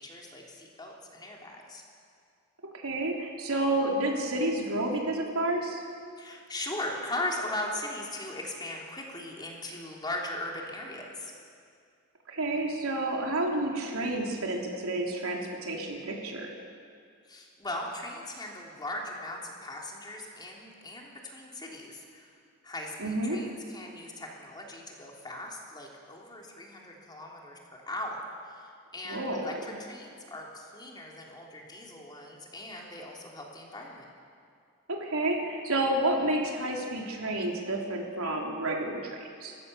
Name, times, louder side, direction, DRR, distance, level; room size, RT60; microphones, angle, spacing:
voice 1, 0.0-1.8 6.2-11.3 17.2-22.3 22.6-34.1, left 1 dB, 20° left, -1 dB, 3.4 m, -39 dB
voice 2, 2.7-5.8 12.3-16.5 23.0-23.4 29.0-29.5 34.9-39.6, right 1 dB, 85° right, 0 dB, 3.5 m, -30 dB
29.5 x 15.0 x 6.9 m, 2.3 s
head